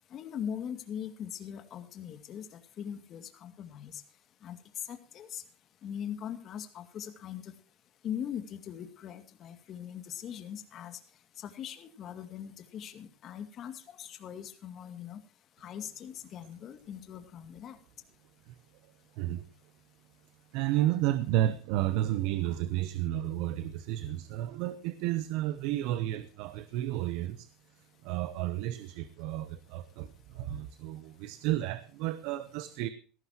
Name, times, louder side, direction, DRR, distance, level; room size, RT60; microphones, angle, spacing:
voice 1, 0.1-2.5 2.8-4.0 4.4-4.6 4.9-5.4 5.8-7.5 8.0-11.0 11.4-15.2 15.6-17.8, left 9 dB, 45° left, 7 dB, 2.3 m, -41 dB
voice 2, 19.1-19.5 20.5-32.9, right 13 dB, 70° right, 13 dB, 0.8 m, -32 dB
17.0 x 14.0 x 3.0 m, 0.41 s
supercardioid pair, 100°, 0 cm